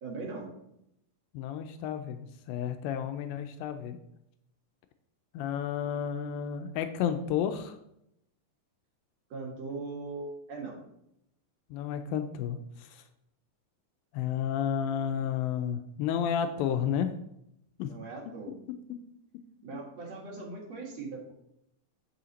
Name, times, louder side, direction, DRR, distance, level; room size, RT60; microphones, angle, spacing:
voice 1, 0.0-0.5 9.3-10.8 17.8-18.6 19.6-21.3, right 3 dB, 55° right, -2 dB, 2.6 m, -40 dB
voice 2, 1.3-4.0 5.3-7.8 11.7-13.0 14.1-17.1 17.8-18.0, left 8 dB, 85° left, 8 dB, 2.3 m, -31 dB
8.6 x 5.6 x 4.0 m, 0.79 s
omnidirectional pair, 4.1 m